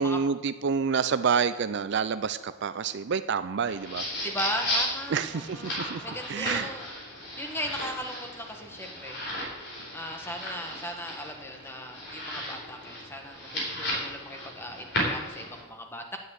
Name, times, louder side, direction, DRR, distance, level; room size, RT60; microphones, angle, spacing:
voice 1, 0.0-4.0 5.1-6.0 6.3-6.7, right 6 dB, 55° right, 12 dB, 0.4 m, -28 dB
sound 1, 3.6-15.6, left 1 dB, 55° left, 4.2 m, -35 dB
voice 2, 4.2-6.9 7.4-9.2 9.9-16.2, equal, 10° left, 3 dB, 1.4 m, -37 dB
9.7 x 9.5 x 8.2 m, 1.2 s
head